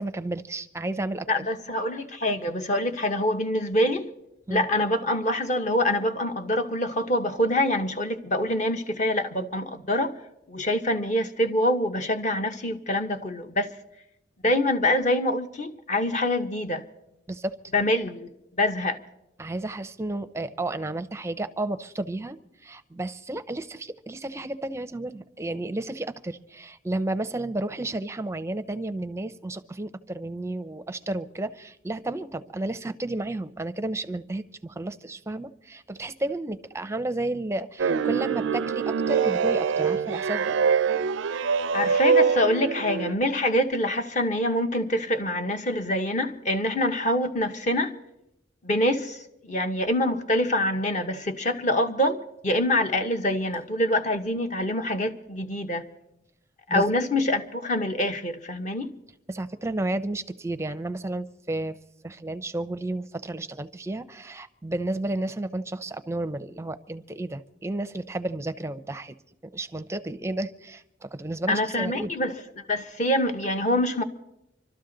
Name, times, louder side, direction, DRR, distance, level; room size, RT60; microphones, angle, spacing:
voice 1, 0.0-1.3 4.5-4.7 17.3-17.6 19.4-22.4 22.6-40.6 56.7-56.9 59.3-61.8 62.0-69.2 69.4-72.1, right 2 dB, 15° right, 0.5 m, -32 dB
voice 2, 1.3-4.1 4.5-10.1 10.5-13.7 14.4-16.8 17.7-18.3 18.6-19.0 41.7-48.0 48.6-55.9 56.7-58.9 71.5-72.4 72.7-74.0, left 1 dB, 40° left, 0.8 m, -25 dB
sound 1, 37.8-43.1, right 6 dB, 75° right, 0.4 m, -24 dB
25.0 x 12.5 x 3.8 m
head